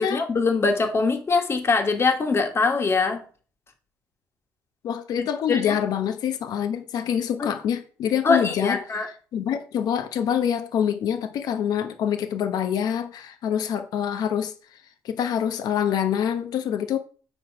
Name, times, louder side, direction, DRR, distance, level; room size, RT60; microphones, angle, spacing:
voice 1, 0.0-3.2 5.5-5.7 7.4-7.6 8.2-9.1, left 4 dB, 35° left, 1.7 m, -22 dB
voice 2, 4.8-8.8 9.3-14.5 15.0-17.0, left 9 dB, 70° left, 1.0 m, -25 dB
8.0 x 4.7 x 4.8 m
supercardioid pair, 80°, 7 cm